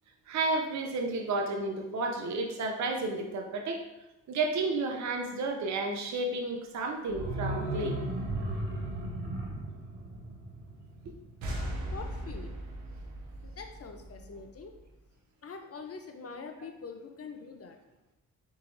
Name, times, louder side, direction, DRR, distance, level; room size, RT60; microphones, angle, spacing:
voice 1, 0.3-3.8 4.3-8.0, right 3 dB, 45° right, 3 dB, 0.6 m, -32 dB
sound 1, 7.1-11.8 12.1-12.2, right 1 dB, 70° right, 1.1 m, -36 dB
sound 2, 11.4-14.9, right 1 dB, 90° right, 0.8 m, -39 dB
voice 2, 11.9-12.6 13.4-14.7 15.4-17.8, left 5 dB, 35° left, 5 dB, 0.7 m, -44 dB
4.0 x 3.8 x 2.7 m, 0.98 s
hypercardioid pair, 45°, 40 cm